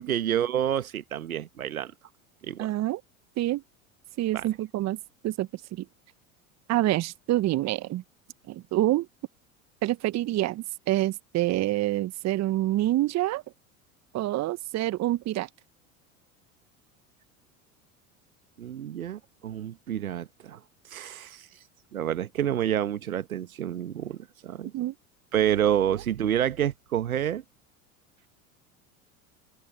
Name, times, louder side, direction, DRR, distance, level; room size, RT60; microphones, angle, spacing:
voice 1, 0.0-1.9 2.4-2.7 4.3-4.5 18.6-20.6 20.9-21.5 21.9-24.7 25.3-27.4, right 10 dB, 80° right, 1.2 m, -28 dB
voice 2, 2.6-3.0 3.4-3.6 4.2-5.0 5.2-5.8 6.7-8.0 8.5-9.1 9.8-13.4 14.1-15.5 24.7-24.9, right 15 dB, 40° right, 1.1 m, -27 dB
open air
figure-of-eight pair, 75°, 42 cm